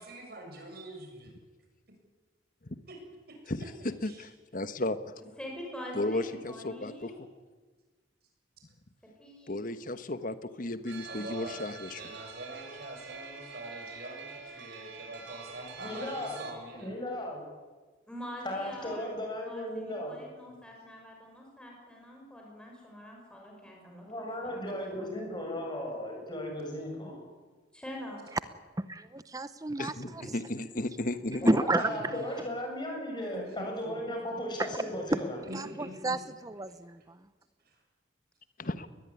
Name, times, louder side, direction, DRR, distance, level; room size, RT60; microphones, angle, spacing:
voice 1, 0.0-1.3 2.9-3.0 3.3-3.4 3.8-4.3 11.0-11.7 12.0-17.0 31.8-32.1 33.3-34.0 35.5-36.1 37.0-37.1 37.6-37.8, right 1 dB, 55° right, 3 dB, 7.3 m, -45 dB
voice 2, 4.0-5.0 5.9-7.1 9.5-12.0 29.8-31.5 38.6-38.9, left 2 dB, 45° left, 11 dB, 1.3 m, -34 dB
voice 3, 5.4-7.2 9.2-9.5 18.1-19.1 19.4-25.6 27.7-28.2, equal, 5° left, -1 dB, 6.1 m, -45 dB
sound 1, 10.9-16.5, right 5 dB, 75° right, 3.8 m, -46 dB
voice 4, 15.8-16.4 16.8-17.4 18.4-20.2 24.1-27.2 31.4-35.4, left 1 dB, 25° left, 1 dB, 7.5 m, -36 dB
voice 5, 28.9-30.3 31.5-31.9 35.1-35.2 35.5-37.0, right 2 dB, 20° right, 13 dB, 0.7 m, -30 dB
21.5 x 20.5 x 9.9 m, 1.3 s
head